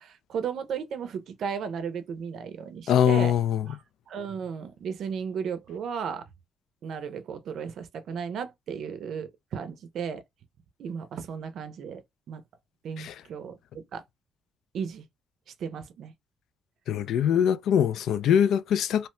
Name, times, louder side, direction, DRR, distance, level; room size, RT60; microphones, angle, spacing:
voice 1, 0.0-3.3 3.7-3.8 4.1-6.3 6.8-10.2 10.8-12.0 12.3-12.4 12.8-14.0 14.7-15.1 15.6-16.1, right 7 dB, 70° right, 0.5 m, -35 dB
voice 2, 2.9-3.7 13.0-13.1 16.9-19.1, left 9 dB, 80° left, 0.3 m, -23 dB
2.8 x 2.1 x 3.0 m
cardioid pair, 90°, 0 cm